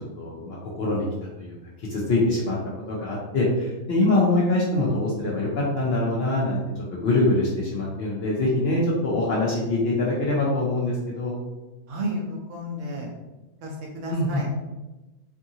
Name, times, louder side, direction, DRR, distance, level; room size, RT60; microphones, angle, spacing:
voice 1, 0.2-1.1 1.4-1.5 1.9-2.6 2.9-6.6 6.9-11.4 14.1-14.4, left 2 dB, 60° left, -4 dB, 0.7 m, -24 dB
voice 2, 11.9-13.1 13.6-14.5, equal, 70° right, -2 dB, 0.9 m, -32 dB
2.7 x 2.4 x 2.7 m, 1.1 s
omnidirectional pair, 1.4 m